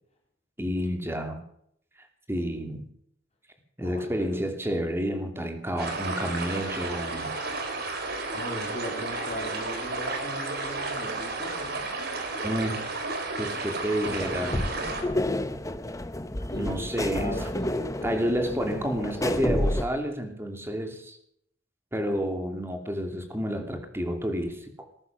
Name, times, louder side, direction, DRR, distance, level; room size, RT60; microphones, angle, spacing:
voice 1, 0.6-1.4 2.3-2.8 3.8-7.3 12.4-12.9 13.4-14.6 16.6-17.3 18.0-21.2 21.9-24.7, equal, 10° right, 5 dB, 2.8 m, -30 dB
voice 2, 3.8-4.4 8.3-11.9 16.5-19.1, left 1 dB, 35° left, 0 dB, 3.8 m, -38 dB
sound 1, 5.8-15.0, right 3 dB, 55° right, 3.7 m, -32 dB
sound 2, 14.0-19.8, left 1 dB, 15° left, 0.9 m, -30 dB
19.5 x 11.0 x 6.0 m, 0.68 s
head